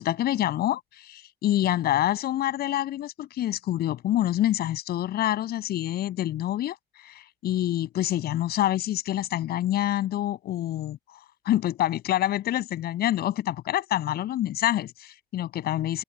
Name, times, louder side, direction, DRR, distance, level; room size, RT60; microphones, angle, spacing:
voice 1, 0.0-11.0 11.4-16.0, left 13 dB, 70° left, 7.4 m, -27 dB
open air
cardioid pair, 110°, 17 cm